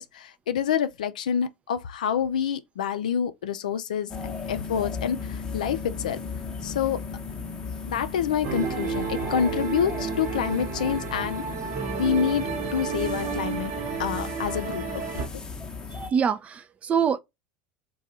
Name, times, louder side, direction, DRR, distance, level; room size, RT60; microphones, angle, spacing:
voice 1, 0.0-6.2 6.6-7.0 7.9-11.4 12.0-13.7 14.0-15.2, left 8 dB, 80° left, 0.4 m, -27 dB
sound 1, 4.1-16.1, left 4 dB, 20° left, 0.8 m, -36 dB
sound 2, 8.4-15.3, right 6 dB, 55° right, 1.0 m, -31 dB
voice 2, 15.9-17.2, right 7 dB, 35° right, 0.5 m, -25 dB
2.6 x 2.3 x 4.1 m
hypercardioid pair, 75°, 4 cm